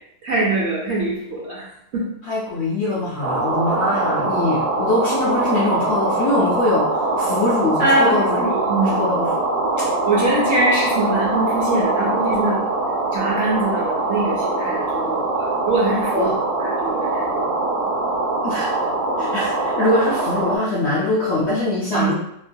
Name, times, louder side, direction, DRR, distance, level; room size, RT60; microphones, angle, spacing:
voice 1, 0.2-1.6 1.9-2.1 7.8-9.0 9.8-12.7 13.1-16.3 16.6-17.4 21.9-22.1, right 2 dB, 60° right, -5 dB, 0.8 m, -23 dB
voice 2, 2.2-8.4 8.8-9.3 16.1-16.4 18.4-18.7 19.2-22.1, left 2 dB, 65° left, -6 dB, 0.6 m, -22 dB
sound 1, 3.2-20.6, right 2 dB, 85° right, 1.2 m, -22 dB
3.0 x 2.2 x 2.6 m, 0.76 s
omnidirectional pair, 1.6 m